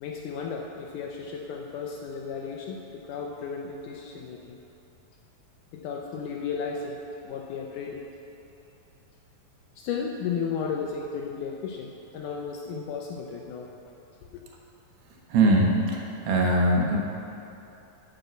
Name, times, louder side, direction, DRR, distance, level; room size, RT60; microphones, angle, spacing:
voice 1, 0.0-4.6 5.7-7.0 7.2-8.0 9.8-13.7 14.3-14.4, left 6 dB, 80° left, 0 dB, 1.9 m, -34 dB
voice 2, 15.3-15.7 16.3-17.0, right 2 dB, 90° right, 0 dB, 3.2 m, -20 dB
10.5 x 5.5 x 7.9 m, 2.9 s
omnidirectional pair, 4.2 m